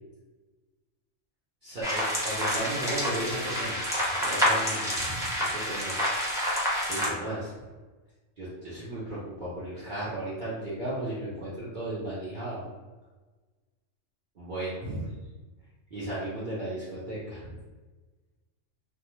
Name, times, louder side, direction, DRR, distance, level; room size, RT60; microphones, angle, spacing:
voice 1, 1.6-3.9 4.2-6.0 6.9-7.5 8.4-12.7 14.4-15.1 15.9-17.6, right 1 dB, 50° right, -10 dB, 0.7 m, -35 dB
sound 1, 1.8-7.1, equal, 5° right, 0.4 m, -28 dB
2.4 x 2.2 x 3.0 m, 1.2 s
omnidirectional pair, 1.3 m